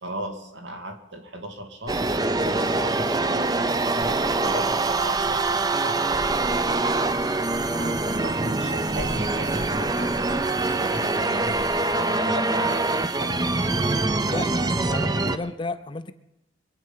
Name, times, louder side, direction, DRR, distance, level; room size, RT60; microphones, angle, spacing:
voice 1, 0.0-3.5 3.9-6.2 7.7-13.4 14.8-15.5, right 1 dB, 85° right, 5 dB, 2.3 m, -36 dB
sound 1, 1.9-15.4, right 2 dB, 20° right, 0.5 m, -24 dB
sound 2, 4.0-12.0, equal, 45° right, 1.3 m, -43 dB
voice 2, 14.3-16.1, left 3 dB, 25° left, 11 dB, 0.5 m, -33 dB
23.5 x 8.7 x 5.7 m, 0.90 s
head